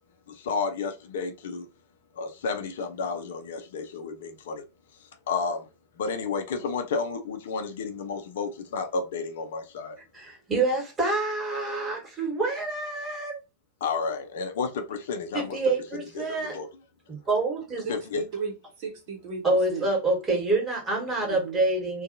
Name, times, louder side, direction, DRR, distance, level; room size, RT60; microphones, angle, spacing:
voice 1, 0.3-1.7 2.2-4.6 5.3-5.7 6.0-10.0 13.8-15.6 16.2-16.3 16.5-16.7 17.9-18.2, left 4 dB, 60° left, 0.5 m, -31 dB
voice 2, 10.1-13.4 15.3-16.6 17.1-17.9 19.4-22.0, right 2 dB, 20° right, 1.3 m, -27 dB
voice 3, 17.8-19.4 19.7-19.9 21.2-21.6, right 5 dB, 45° right, 0.9 m, -35 dB
2.6 x 2.3 x 2.6 m
figure-of-eight pair, 90°, 0 cm